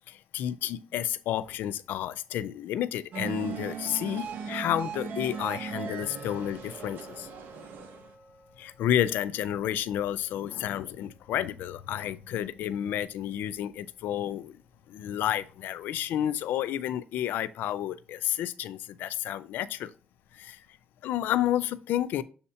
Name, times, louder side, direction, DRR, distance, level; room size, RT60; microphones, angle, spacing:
voice 1, 0.1-7.3 8.6-14.6 14.9-19.9 20.3-20.7 21.0-22.2, left 11 dB, 90° left, 0.4 m, -31 dB
sound 1, 3.1-8.1, right 6 dB, 75° right, 0.9 m, -38 dB
sound 2, 5.3-12.2 12.4-12.5 13.1-13.2 13.7-13.8, equal, 55° right, 2.6 m, -52 dB
7.0 x 2.8 x 5.5 m
cardioid pair, 110°, 3 cm